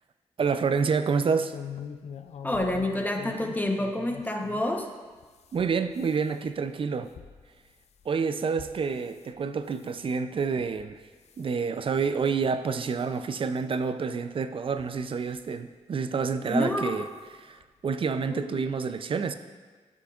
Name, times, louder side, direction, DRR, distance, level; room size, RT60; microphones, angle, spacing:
voice 1, 0.4-1.6 5.5-7.1 8.1-11.0 11.4-17.1 17.4-19.3, right 5 dB, 45° right, 10 dB, 0.4 m, -28 dB
sound 1, 1.4-4.7 5.2-9.3 9.7-10.0 10.6-10.9 11.2-11.5 12.1-12.2 12.6-12.7 13.8-13.9 14.7-15.5 16.6-16.8 17.2-17.3 17.6-17.7, left 8 dB, 60° left, 0.4 m, -44 dB
voice 2, 2.4-4.9 16.5-17.0 18.3-18.6, left 1 dB, 15° left, 3 dB, 0.8 m, -28 dB
11.5 x 6.0 x 2.4 m, 1.4 s
cardioid pair, 75°, 13 cm